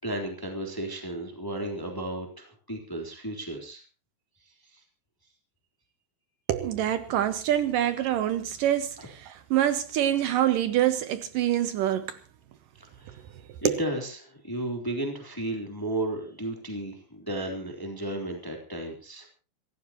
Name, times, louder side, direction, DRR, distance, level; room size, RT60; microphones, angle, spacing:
voice 1, 0.0-3.8 4.6-4.8 9.0-9.1 12.8-13.2 13.6-19.3, right 1 dB, 5° left, 3.0 m, -34 dB
voice 2, 6.5-12.2 13.6-13.8, right 11 dB, 75° right, 2.1 m, -26 dB
27.0 x 15.0 x 3.0 m
omnidirectional pair, 4.6 m